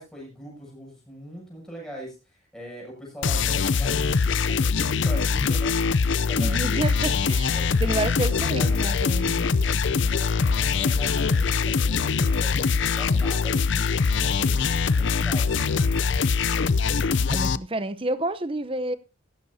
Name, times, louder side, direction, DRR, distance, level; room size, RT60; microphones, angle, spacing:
voice 1, 0.0-4.1 4.5-5.7 6.2-7.8 8.2-9.0 10.1-15.9, equal, 5° left, 7.6 m, -41 dB
sound 1, 3.2-17.6, left 5 dB, 65° left, 0.6 m, -23 dB
voice 2, 6.4-9.4 17.3-19.0, right 2 dB, 25° right, 0.7 m, -29 dB
16.0 x 14.5 x 2.8 m
head